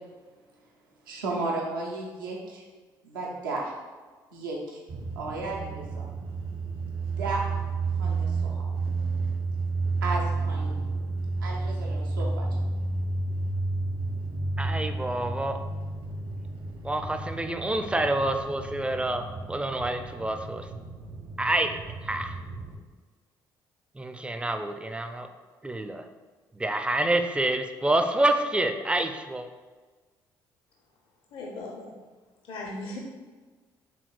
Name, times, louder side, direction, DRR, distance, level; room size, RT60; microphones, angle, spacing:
voice 1, 1.1-2.6 3.0-3.7 4.3-4.8 5.2-6.1 7.2-7.5 8.0-8.7 10.0-10.8 11.4-12.5, right 3 dB, 85° right, -2 dB, 0.6 m, -34 dB
sound 1, 4.9-22.7, right 3 dB, 55° right, 0.8 m, -31 dB
voice 2, 14.6-15.6 16.8-20.7 21.4-22.3 24.0-25.3 25.6-26.0 26.6-29.5, right 1 dB, 10° right, 7 dB, 0.4 m, -27 dB
voice 3, 31.3-32.0 32.5-33.0, left 2 dB, 55° left, 0 dB, 0.5 m, -37 dB
4.4 x 3.6 x 2.3 m, 1.4 s
hypercardioid pair, 45°, 11 cm